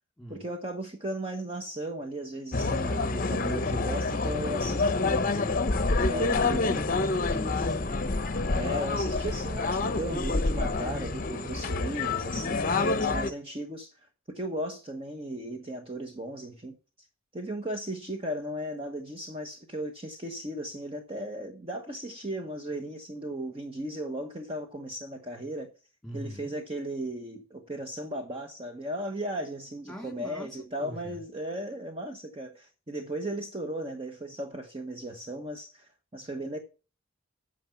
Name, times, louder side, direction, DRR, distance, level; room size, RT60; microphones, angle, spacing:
voice 1, 0.3-5.6 6.1-6.8 8.5-16.7 17.3-25.7 26.1-36.6, right 1 dB, 25° right, 1.0 m, -36 dB
sound 1, 2.5-13.3, left 3 dB, 40° left, 0.7 m, -27 dB
voice 2, 5.1-8.6 12.3-12.8 26.0-26.5 29.9-31.2, equal, ahead, 2.6 m, -43 dB
9.4 x 6.4 x 5.8 m
head